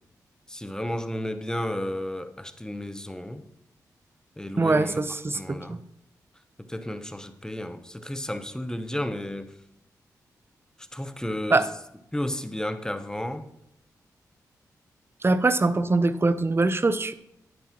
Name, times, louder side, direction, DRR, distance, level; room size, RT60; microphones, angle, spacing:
voice 1, 0.5-3.4 4.4-5.0 5.3-5.8 6.7-9.5 10.9-11.7 12.1-13.5, left 1 dB, 10° left, 10 dB, 0.9 m, -32 dB
voice 2, 4.6-5.8 11.5-11.7 15.2-17.1, right 3 dB, 35° right, 14 dB, 0.7 m, -23 dB
9.6 x 9.1 x 3.0 m, 0.83 s
supercardioid pair, 40°, 7 cm